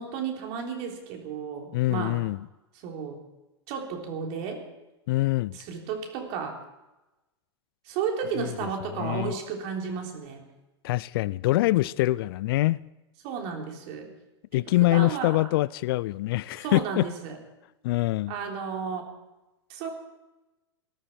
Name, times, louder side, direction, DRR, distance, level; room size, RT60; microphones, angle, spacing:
voice 1, 0.0-2.2 2.8-3.2 3.7-4.6 5.5-6.6 7.9-10.4 13.2-14.1 14.5-15.4 16.6-17.4 18.3-19.1 19.7-19.9, right 6 dB, 50° right, 3.5 m, -33 dB
voice 2, 1.7-2.4 5.1-5.6 8.4-8.5 9.0-9.3 10.8-12.8 14.5-17.1 17.8-18.3, left 17 dB, 55° left, 0.4 m, -24 dB
19.0 x 13.0 x 4.5 m
hypercardioid pair, 100°, 14 cm